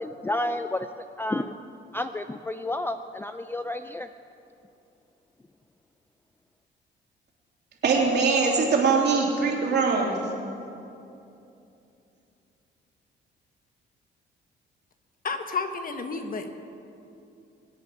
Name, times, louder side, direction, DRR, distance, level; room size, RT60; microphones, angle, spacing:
voice 1, 0.0-1.6 1.9-4.1, left 1 dB, 10° left, 9 dB, 0.4 m, -31 dB
voice 2, 7.8-10.2, right 4 dB, 60° right, -2 dB, 3.2 m, -22 dB
voice 3, 15.2-16.5, left 4 dB, 45° left, 6 dB, 1.4 m, -31 dB
24.0 x 8.2 x 5.4 m, 2.7 s
cardioid pair, 90°, 20 cm